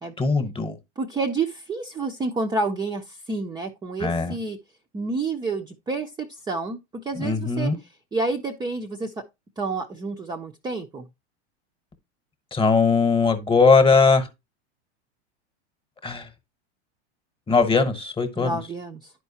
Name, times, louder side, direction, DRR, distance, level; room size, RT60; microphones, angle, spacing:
voice 1, 0.2-0.8 4.0-4.4 7.2-7.8 12.5-14.3 16.0-16.3 17.5-18.5, left 4 dB, 15° left, 1.0 m, -20 dB
voice 2, 1.0-4.6 4.9-7.7 8.1-9.2 9.6-11.1 18.4-19.1, right 3 dB, 10° right, 0.5 m, -29 dB
10.5 x 4.6 x 2.8 m
hypercardioid pair, 110°, 34 cm